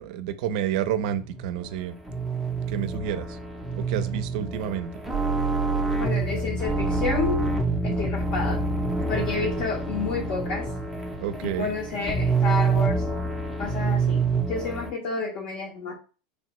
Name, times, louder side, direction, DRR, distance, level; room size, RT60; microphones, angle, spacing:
voice 1, 0.0-1.9 2.7-3.4 3.7-5.0 11.2-11.7, right 9 dB, 60° right, 12 dB, 0.4 m, -29 dB
sound 1, 1.1-14.9, right 3 dB, ahead, 0.5 m, -27 dB
voice 2, 6.0-7.5 7.8-8.6 9.1-10.7 11.4-13.1 13.6-16.0, left 4 dB, 45° left, 0 dB, 0.7 m, -30 dB
3.0 x 2.2 x 2.9 m, 0.35 s
supercardioid pair, 150°, 5 cm